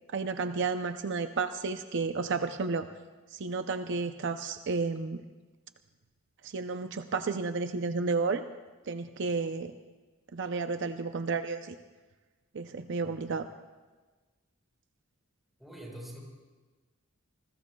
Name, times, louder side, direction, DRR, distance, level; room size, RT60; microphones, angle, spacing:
voice 1, 0.1-2.9 3.3-5.2 6.4-8.4 8.9-9.7 10.3-11.8 12.5-13.5, right 4 dB, 60° right, 8 dB, 0.6 m, -32 dB
voice 2, 15.6-16.2, equal, ahead, -2 dB, 4.3 m, -44 dB
27.5 x 21.0 x 2.3 m, 1.3 s
head